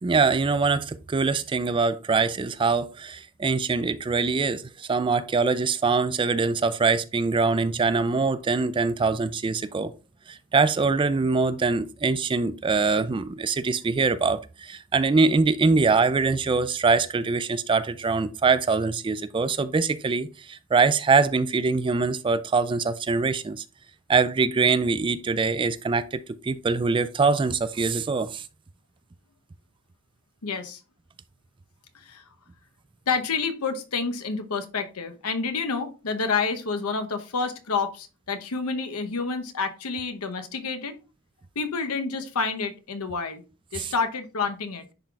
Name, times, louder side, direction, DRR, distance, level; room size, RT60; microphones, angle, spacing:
voice 1, 0.0-9.9 10.3-23.6 24.1-28.5 43.7-43.9, right 4 dB, 20° right, 0.3 m, -23 dB
voice 2, 30.4-30.8 31.9-32.2 33.1-41.0 41.6-43.4 43.7-44.9, left 4 dB, 90° left, 0.9 m, -29 dB
10.5 x 3.9 x 2.3 m
head